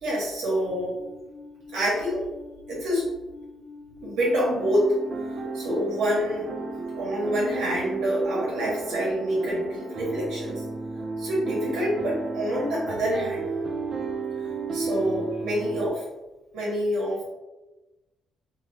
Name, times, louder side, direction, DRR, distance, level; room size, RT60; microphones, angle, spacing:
voice 1, 0.0-1.0 1.7-2.2 2.7-3.1 4.0-5.0 5.5-6.5 6.9-10.6 11.2-13.4 14.7-16.0 16.5-17.2, equal, 80° right, -5 dB, 1.1 m, -26 dB
Alarm, 0.5-9.4, left 4 dB, 75° left, 0.5 m, -46 dB
sound 1, 4.2-15.9, right 3 dB, 60° right, 0.5 m, -33 dB
2.8 x 2.3 x 3.2 m, 1.1 s
cardioid pair, 90°, 0 cm